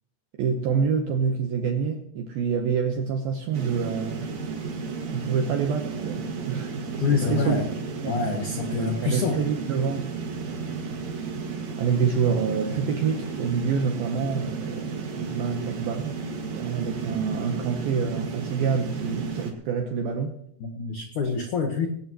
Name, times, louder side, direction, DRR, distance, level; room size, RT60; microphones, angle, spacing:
voice 1, 0.3-4.3 5.1-6.7 7.1-7.6 8.0-8.1 8.8-10.1 10.5-10.6 11.8-16.2 16.6-20.4, right 6 dB, 80° right, 2.2 m, -27 dB
sound 1, 3.5-19.5, right 4 dB, 45° right, 2.4 m, -33 dB
voice 2, 7.0-7.7 8.1-9.4 10.9-11.0 15.2-15.3 20.6-21.9, left 5 dB, 80° left, 1.7 m, -26 dB
19.5 x 18.0 x 3.1 m
omnidirectional pair, 5.7 m